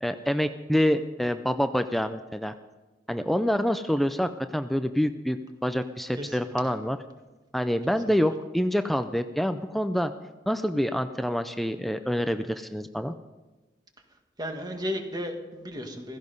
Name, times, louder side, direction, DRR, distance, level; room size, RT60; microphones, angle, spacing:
voice 1, 0.0-2.5 3.1-7.0 7.5-10.1 10.5-13.1, equal, ahead, 9 dB, 0.4 m, -26 dB
voice 2, 6.2-6.5 14.4-16.2, equal, 25° right, 4 dB, 1.8 m, -34 dB
16.0 x 15.5 x 5.4 m, 1.1 s
head